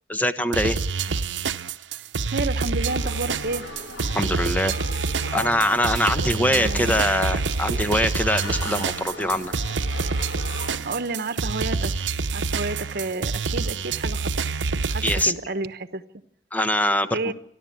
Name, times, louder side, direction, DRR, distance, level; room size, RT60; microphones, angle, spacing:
voice 1, 0.1-0.8 4.1-5.0 5.3-9.5 15.0-15.3 16.5-17.3, left 1 dB, 10° left, 9 dB, 1.2 m, -23 dB
sound 1, 0.5-15.3, right 4 dB, 80° right, 0.8 m, -27 dB
voice 2, 2.2-3.7 6.0-7.1 10.7-14.6 14.9-16.0 17.1-17.3, right 3 dB, 55° right, 11 dB, 1.2 m, -31 dB
sound 2, 2.8-10.8, left 2 dB, 85° left, 2.6 m, -37 dB
29.0 x 12.0 x 9.0 m, 0.71 s
head